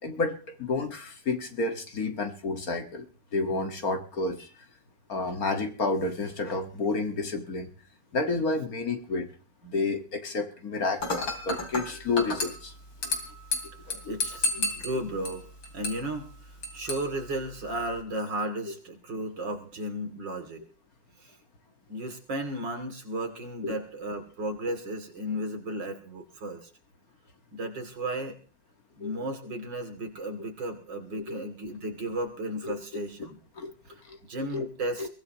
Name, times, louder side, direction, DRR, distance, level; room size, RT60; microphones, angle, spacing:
voice 1, 0.0-3.1 3.3-4.5 5.1-7.7 8.1-9.3 9.6-12.7 13.6-14.2 14.9-15.0 23.6-23.8 29.0-29.2 31.3-31.4 32.6-32.8 33.6-33.7 34.1-34.2 34.5-34.7 35.0-35.1, left 3 dB, 50° left, 6 dB, 2.1 m, -30 dB
Dishes pots and pans / Glass, 11.0-18.0, left 2 dB, 85° left, 3.6 m, -34 dB
voice 2, 14.1-15.5 15.7-16.3 16.7-20.6 21.2-21.3 21.9-26.7 27.5-28.4 29.0-33.4 33.9-35.1, right 1 dB, 70° right, 5 dB, 3.3 m, -34 dB
22.5 x 17.0 x 3.0 m, 0.37 s
omnidirectional pair, 2.0 m